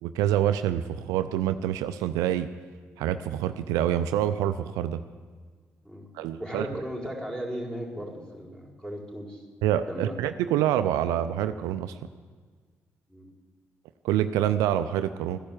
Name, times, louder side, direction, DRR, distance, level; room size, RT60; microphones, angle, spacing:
voice 1, 0.0-2.5 3.0-5.0 6.2-6.8 9.6-11.9 14.0-15.4, right 11 dB, 75° right, 11 dB, 0.5 m, -26 dB
voice 2, 6.3-9.4 9.9-10.2 13.1-13.3, equal, 10° left, -1 dB, 4.4 m, -36 dB
14.0 x 10.5 x 7.7 m, 1.5 s
hypercardioid pair, 40°, 6 cm